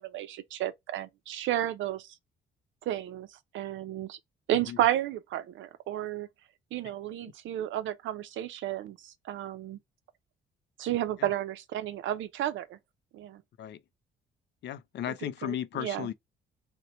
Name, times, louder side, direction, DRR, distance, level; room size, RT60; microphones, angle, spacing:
voice 1, 0.0-2.1 2.9-4.2 4.5-6.3 6.7-9.8 10.8-12.8 13.1-13.4 15.1-15.2 15.4-16.1, right 13 dB, 75° right, 0.5 m, -32 dB
voice 2, 14.6-16.1, left 11 dB, 60° left, 0.4 m, -35 dB
2.8 x 2.1 x 4.1 m
cardioid pair, 90°, 20 cm